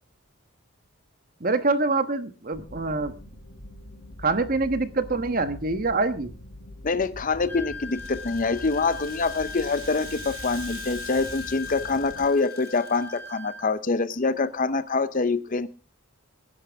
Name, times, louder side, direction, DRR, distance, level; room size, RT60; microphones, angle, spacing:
voice 1, 1.4-3.2 4.2-6.3, right 3 dB, 40° right, 10 dB, 1.2 m, -25 dB
sound 1, 2.5-12.2, left 1 dB, 60° left, 3.2 m, -44 dB
voice 2, 6.8-15.7, left 3 dB, 40° left, 14 dB, 0.6 m, -25 dB
Wind instrument woodwind instrument, 7.5-13.7, left 7 dB, 10° left, 4.0 m, -39 dB
Rattle (instrument), 7.8-13.3, right 5 dB, 80° right, 6.1 m, -45 dB
23.0 x 10.5 x 3.5 m, 0.33 s
head